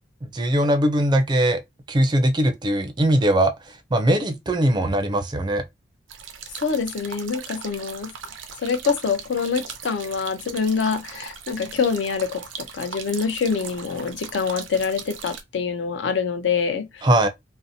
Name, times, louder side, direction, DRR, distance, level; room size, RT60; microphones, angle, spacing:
voice 1, 0.2-1.6 1.9-5.6 17.0-17.3, right 1 dB, 25° right, 0.4 m, -20 dB
sound 1, 6.1-15.4, right 6 dB, 90° right, 0.5 m, -38 dB
voice 2, 6.6-8.1 8.6-17.0, left 5 dB, 75° left, 0.5 m, -25 dB
2.6 x 2.0 x 2.6 m
head